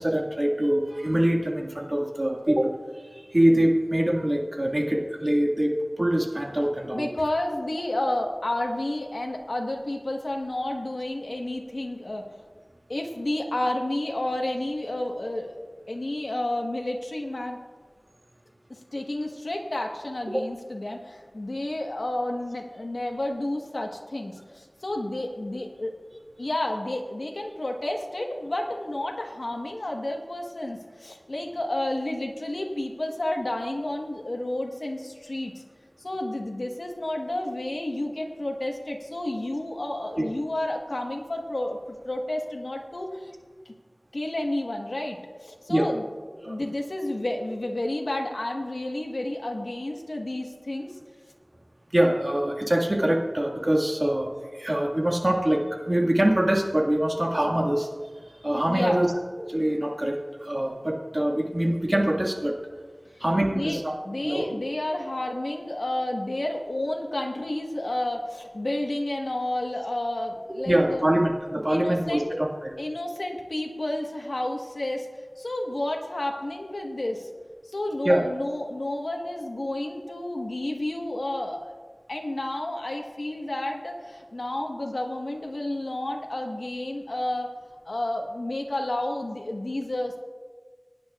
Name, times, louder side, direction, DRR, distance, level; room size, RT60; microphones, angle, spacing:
voice 1, 0.0-7.1 20.3-20.4 40.2-40.3 45.7-45.9 46.4-46.6 51.9-57.9 58.4-59.1 59.5-62.6 63.2-63.9 64.2-64.6 70.7-72.7 78.0-78.2, right 1 dB, 45° right, 0 dB, 1.9 m, -24 dB
voice 2, 6.9-12.3 12.9-15.5 15.9-17.6 18.7-25.9 26.4-35.6 36.0-43.3 43.6-43.7 44.1-46.0 46.4-51.0 58.7-59.1 63.2-63.8 64.0-71.0 71.7-72.3 72.8-75.1 75.4-77.3 77.7-81.7 82.1-87.5 87.8-90.2, left 1 dB, 85° left, 2 dB, 1.3 m, -31 dB
22.0 x 10.0 x 2.4 m, 1.5 s
wide cardioid pair, 40°, 0 cm